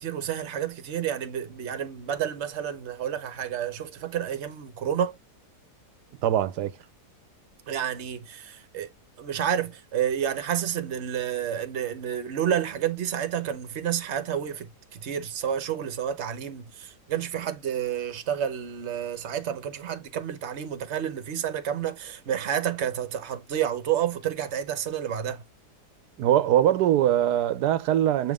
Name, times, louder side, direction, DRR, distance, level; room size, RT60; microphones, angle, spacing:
voice 1, 0.0-5.2 7.7-8.9 9.2-25.4, right 9 dB, 50° right, 1.0 m, -30 dB
voice 2, 6.2-6.7 26.2-28.3, right 11 dB, 80° right, 1.2 m, -22 dB
7.6 x 3.6 x 3.5 m
omnidirectional pair, 1.7 m